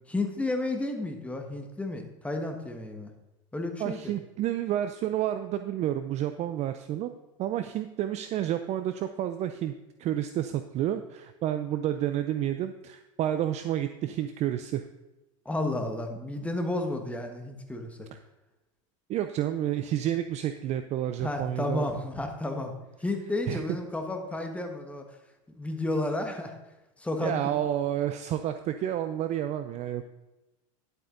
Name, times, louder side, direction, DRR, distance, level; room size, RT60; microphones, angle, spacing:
voice 1, 0.1-3.1 3.5-4.1 15.4-18.1 21.2-22.7 23.0-25.0 25.5-26.5 27.0-27.5, left 2 dB, 5° left, 4 dB, 1.5 m, -32 dB
voice 2, 3.8-7.1 7.4-9.7 10.0-14.8 19.1-21.9 23.5-23.6 27.2-30.1, right 11 dB, 40° right, 9 dB, 0.5 m, -30 dB
11.0 x 8.1 x 3.9 m, 1.0 s
supercardioid pair, 115°, 18 cm